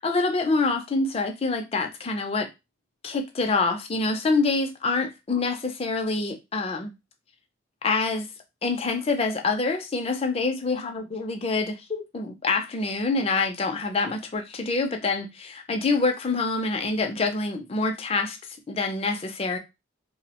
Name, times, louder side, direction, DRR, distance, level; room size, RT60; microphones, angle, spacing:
voice 1, 0.0-2.5 3.0-6.9 7.8-8.3 8.6-18.4 18.7-19.6, left 3 dB, 30° left, 0.4 m, -26 dB
2.7 x 2.0 x 2.8 m
head